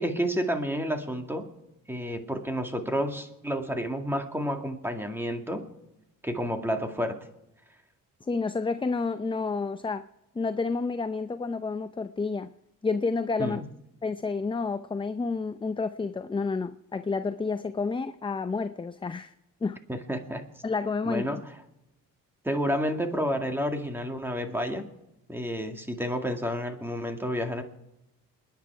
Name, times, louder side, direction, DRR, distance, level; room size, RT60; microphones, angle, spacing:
voice 1, 0.0-1.5 1.9-5.7 6.2-7.2 13.4-13.7 19.9-20.4 21.0-21.4 22.4-24.9 25.3-27.6, equal, 5° right, 2.2 m, -30 dB
voice 2, 8.2-10.1 10.3-12.5 12.8-13.6 14.0-19.3 19.6-19.8 20.6-21.4, left 4 dB, 15° left, 0.5 m, -30 dB
28.5 x 10.5 x 4.8 m
cardioid pair, 110°, 34 cm